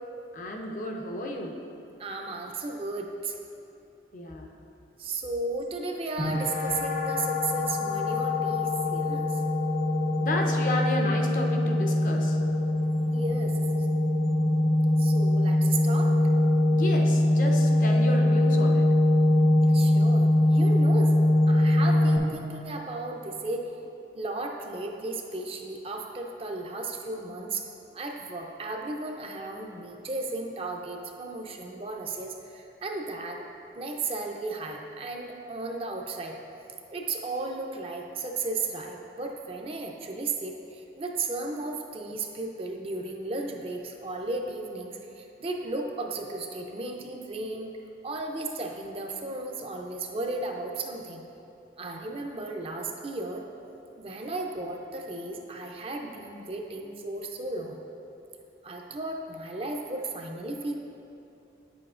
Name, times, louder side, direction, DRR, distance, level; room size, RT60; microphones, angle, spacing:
voice 1, 0.3-1.6 4.1-4.5 10.2-12.4 16.7-18.9, left 1 dB, 45° left, 2 dB, 0.6 m, -32 dB
voice 2, 2.0-3.3 5.0-9.4 13.1-14.0 15.0-16.2 19.7-21.2 21.5-23.6 24.1-27.6 27.9-33.4 33.8-36.4 36.9-47.7 48.0-51.2 51.8-53.4 54.0-57.8 58.6-60.7, right 3 dB, 35° right, 2 dB, 0.4 m, -35 dB
sound 1, 6.2-22.2, left 1 dB, 65° left, 1.3 m, -23 dB
8.8 x 6.9 x 2.5 m, 2.8 s
head